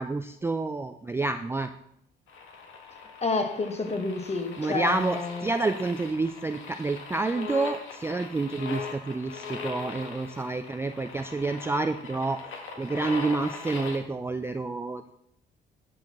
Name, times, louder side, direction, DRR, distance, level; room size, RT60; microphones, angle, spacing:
voice 1, 0.0-1.7 4.6-12.4 12.8-15.2, right 3 dB, 10° right, 8 dB, 0.3 m, -29 dB
sound 1, 2.3-14.0, left 5 dB, 80° left, 1.3 m, -40 dB
voice 2, 3.2-5.5, left 3 dB, 30° left, 5 dB, 1.3 m, -29 dB
11.5 x 6.2 x 2.9 m, 0.75 s
cardioid pair, 90°, 20 cm